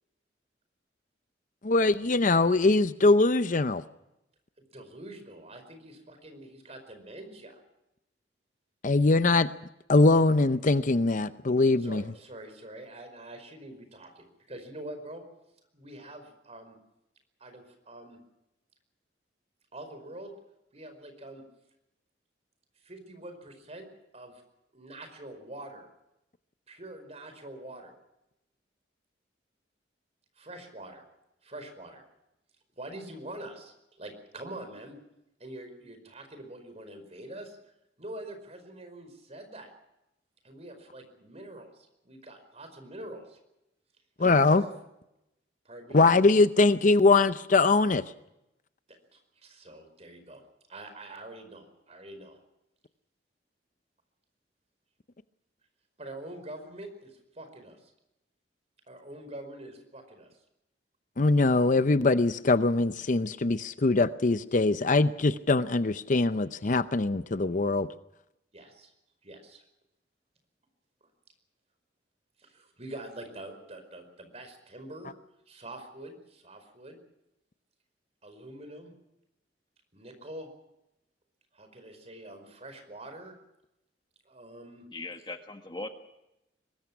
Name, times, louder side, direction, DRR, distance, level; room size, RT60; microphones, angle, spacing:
voice 1, 1.6-3.8 8.8-9.5 9.9-12.0 44.2-44.6 45.9-48.0 61.2-67.9, left 3 dB, 45° left, 13 dB, 0.7 m, -22 dB
voice 2, 4.7-7.6 11.8-15.2 15.7-16.8 17.4-18.2 19.7-20.3 20.7-21.4 22.8-23.9 24.1-24.4 24.7-25.9 26.7-27.9 30.4-31.0 31.4-32.0 32.8-35.0 35.4-37.6 38.0-39.7 40.4-43.4 44.2-44.7 45.6-46.0 49.1-50.4 50.7-52.4 56.0-57.9 58.9-60.3 68.5-68.9 69.2-69.6 72.4-75.1 75.5-77.0 78.2-78.9 79.9-80.5 81.5-83.3 84.2-84.9, right 1 dB, 35° right, 7 dB, 5.0 m, -45 dB
voice 3, 84.9-85.9, left 2 dB, 25° left, 6 dB, 1.6 m, -39 dB
23.5 x 20.0 x 6.0 m, 0.89 s
head